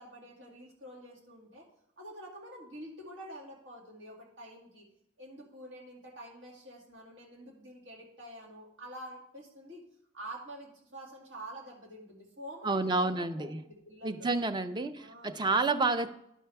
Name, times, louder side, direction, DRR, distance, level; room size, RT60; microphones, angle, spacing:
voice 1, 0.0-1.6 2.0-4.9 5.2-9.8 10.1-14.3 15.0-15.9, right 1 dB, 90° right, -3 dB, 2.3 m, -47 dB
voice 2, 12.6-13.6 14.0-16.1, right 3 dB, 25° right, 11 dB, 0.5 m, -29 dB
11.0 x 5.7 x 3.4 m, 0.76 s
head